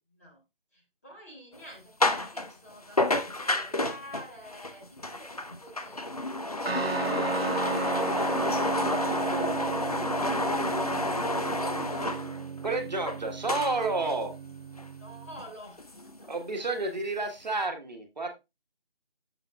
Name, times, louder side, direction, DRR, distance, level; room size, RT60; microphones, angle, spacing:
voice 1, 0.7-12.2 15.0-16.3 16.6-17.0, equal, 15° left, -3 dB, 1.2 m, -49 dB
sound 1, 1.5-1.6 2.0-2.5 3.0-13.2 13.5-14.1 14.8-14.9 15.4-15.5 15.8-16.5, left 2 dB, 40° left, 0.5 m, -30 dB
Guitar, 6.7-15.5, right 4 dB, 85° right, 1.0 m, -34 dB
voice 2, 12.6-14.3 16.3-18.4, right 3 dB, 45° right, 4 dB, 1.3 m, -30 dB
8.8 x 6.7 x 2.3 m, 0.23 s
figure-of-eight pair, 165°, 30 cm